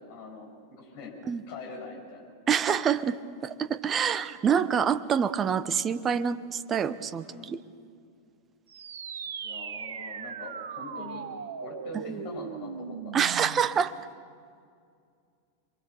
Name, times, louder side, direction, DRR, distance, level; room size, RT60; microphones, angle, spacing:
voice 1, 0.0-2.3 7.2-7.5 9.4-11.3 11.6-13.2, left 3 dB, 45° left, 1 dB, 6.9 m, -43 dB
voice 2, 2.5-3.2 3.4-7.6 12.1-12.2 13.1-13.9, right 7 dB, 25° right, 15 dB, 0.9 m, -26 dB
sound 1, 8.7-13.7, right 7 dB, 65° right, 1.2 m, -38 dB
27.5 x 23.0 x 7.0 m, 2.2 s
figure-of-eight pair, 90°, 0 cm